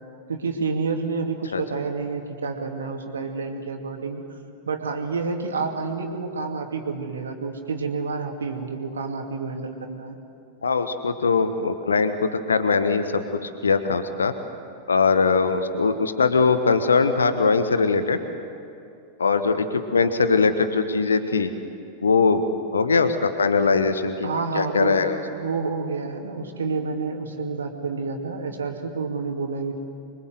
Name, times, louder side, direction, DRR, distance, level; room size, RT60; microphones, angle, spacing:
voice 1, 0.3-4.2 4.7-10.2 24.2-25.0 25.3-29.8, right 4 dB, 70° right, 3 dB, 2.4 m, -29 dB
voice 2, 10.6-14.3 14.9-18.2 19.2-21.5 22.0-22.4 22.7-24.3 24.5-25.2, left 4 dB, 75° left, 10 dB, 1.2 m, -21 dB
26.0 x 23.0 x 7.9 m, 2.6 s
figure-of-eight pair, 90°, 0 cm